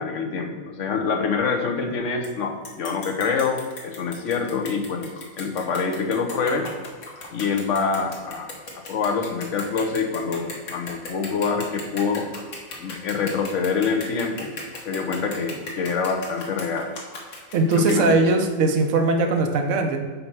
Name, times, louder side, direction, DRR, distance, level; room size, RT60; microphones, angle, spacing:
voice 1, 0.0-5.1 5.4-6.7 7.3-8.5 8.9-12.2 12.8-14.5 14.8-16.9 17.7-18.2, left 5 dB, 65° left, 4 dB, 1.2 m, -25 dB
Huevos Bate, 2.2-2.3 2.6-18.5, left 3 dB, 85° left, 1.7 m, -38 dB
voice 2, 17.5-20.0, right 3 dB, 65° right, 4 dB, 1.1 m, -20 dB
5.4 x 4.2 x 6.0 m, 1.5 s
omnidirectional pair, 1.4 m